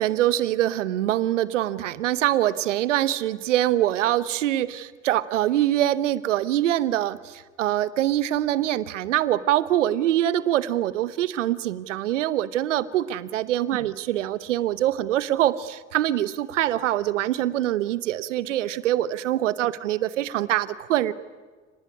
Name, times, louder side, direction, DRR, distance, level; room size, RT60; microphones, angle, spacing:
voice 1, 0.0-21.1, right 13 dB, 85° right, 17 dB, 1.0 m, -24 dB
29.5 x 19.5 x 9.7 m, 1.4 s
hypercardioid pair, 55°, 36 cm